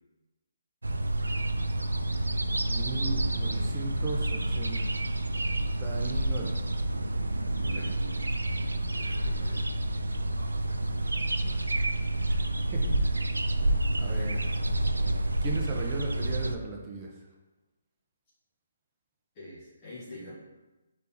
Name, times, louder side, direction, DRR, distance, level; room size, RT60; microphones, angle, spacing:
sound 1, 0.8-16.6, right 1 dB, 90° right, 0.3 m, -29 dB
voice 1, 2.7-4.8 5.8-6.6 11.0-11.6 12.3-12.4 12.7-12.9 13.7-14.4 15.4-17.1, right 3 dB, 25° right, -1 dB, 0.6 m, -37 dB
voice 2, 7.6-8.2 8.7-9.6 14.0-14.8 19.3-20.4, left 1 dB, 30° left, -9 dB, 1.3 m, -47 dB
4.2 x 3.4 x 2.7 m, 1.1 s
figure-of-eight pair, 145°, 0 cm